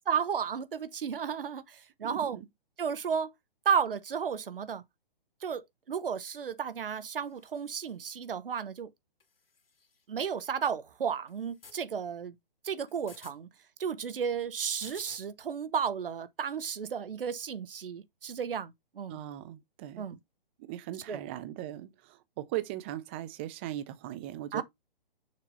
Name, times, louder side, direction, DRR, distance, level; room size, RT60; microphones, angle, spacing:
voice 1, 0.1-2.4 2.8-3.3 3.6-4.8 5.4-8.9 10.1-12.4 12.6-13.5 13.8-19.2 20.0-20.2 21.1-21.2 24.5-24.6, right 7 dB, 70° right, 1.1 m, -33 dB
voice 2, 2.0-2.5 19.1-20.1 20.6-24.6, right 14 dB, 15° right, 0.3 m, -39 dB
sound 1, 7.2-8.0 9.2-10.1 11.3-11.8 12.9-13.4 14.6-15.3 16.4-16.5, left 5 dB, 75° left, 2.2 m, -56 dB
6.7 x 2.8 x 5.2 m
hypercardioid pair, 135°, 29 cm